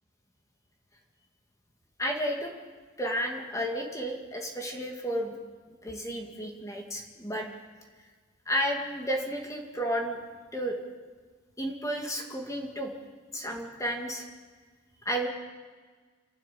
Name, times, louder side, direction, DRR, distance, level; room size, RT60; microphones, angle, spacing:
voice 1, 2.0-2.5 3.0-5.4 5.7-7.5 8.5-10.2 10.5-10.8 11.6-12.9 13.3-14.3 15.0-15.3, equal, 15° left, 2 dB, 2.2 m, -32 dB
27.5 x 12.0 x 8.5 m, 1.5 s
head